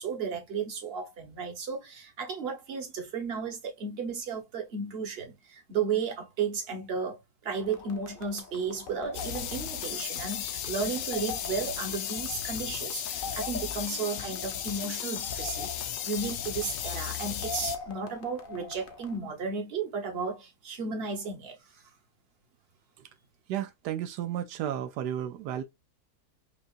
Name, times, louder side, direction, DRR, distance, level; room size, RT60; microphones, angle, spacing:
voice 1, 0.0-21.8, right 5 dB, 40° right, 1.3 m, -34 dB
sound 1, 7.6-19.2, left 4 dB, 50° left, 0.6 m, -43 dB
sound 2, 9.1-17.8, left 10 dB, 70° left, 1.0 m, -35 dB
voice 2, 23.5-25.6, right 10 dB, 85° right, 1.2 m, -33 dB
5.4 x 2.4 x 2.5 m
omnidirectional pair, 1.7 m